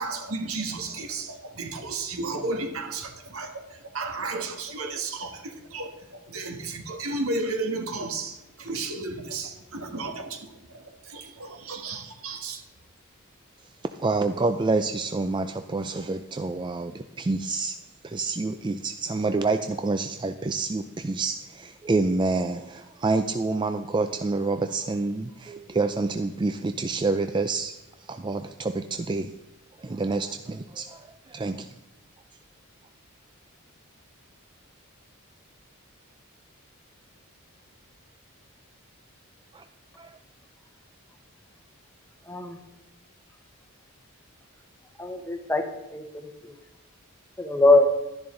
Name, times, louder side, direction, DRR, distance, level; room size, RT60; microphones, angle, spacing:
voice 1, 0.0-10.5 10.7-12.6, right 3 dB, 75° right, 4 dB, 1.7 m, -33 dB
voice 2, 14.0-17.8 18.0-27.7 28.0-29.3 29.8-31.7 39.5-39.6 40.0-40.1, right 3 dB, 20° right, 8 dB, 0.4 m, -28 dB
voice 3, 42.2-42.6 45.0-45.7 45.9-46.5 47.4-48.0, left 2 dB, 10° left, 6 dB, 0.9 m, -22 dB
12.0 x 10.5 x 3.8 m, 1.0 s
head